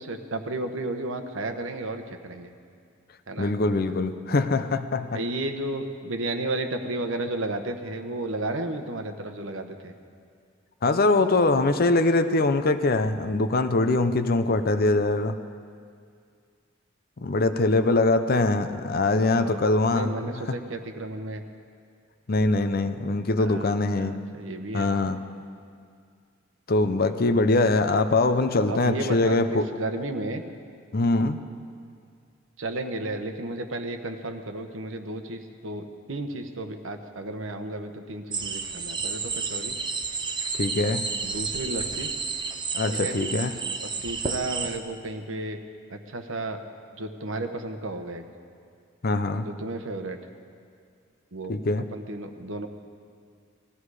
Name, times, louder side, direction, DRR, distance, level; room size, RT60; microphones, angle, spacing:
voice 1, 0.0-2.5 3.3-3.5 5.1-9.9 19.3-19.6 19.9-21.4 23.4-24.9 28.7-30.4 32.6-39.7 41.2-42.1 43.0-43.1 44.0-45.6 45.9-46.6 47.0-48.2 49.4-50.2 51.3-51.6 51.9-52.7, right 2 dB, 80° right, 6 dB, 1.1 m, -33 dB
voice 2, 3.4-5.2 10.8-15.4 17.2-20.6 22.3-24.1 24.7-25.2 26.7-29.7 30.9-31.4 40.6-41.1 42.7-43.6 49.0-49.5 51.5-51.9, left 2 dB, 50° left, 9 dB, 0.7 m, -23 dB
sound 1, 38.3-44.8, right 4 dB, 25° right, 0.7 m, -31 dB
19.0 x 14.0 x 4.9 m, 2.2 s
head